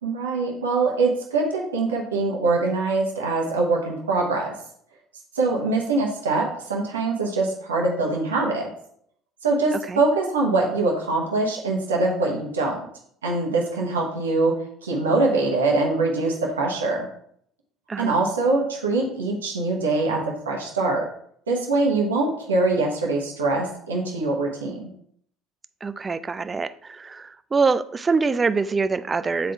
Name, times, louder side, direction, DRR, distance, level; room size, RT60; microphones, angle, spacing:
voice 1, 0.0-4.5 5.3-8.7 9.4-12.8 13.2-14.5 14.8-17.1 18.0-20.2 20.5-21.0 21.5-24.9, right 3 dB, 90° right, -1 dB, 1.0 m, -23 dB
voice 2, 25.8-29.5, right 4 dB, 25° right, 12 dB, 0.4 m, -24 dB
8.1 x 3.8 x 3.4 m, 0.65 s
hypercardioid pair, 65°, 0 cm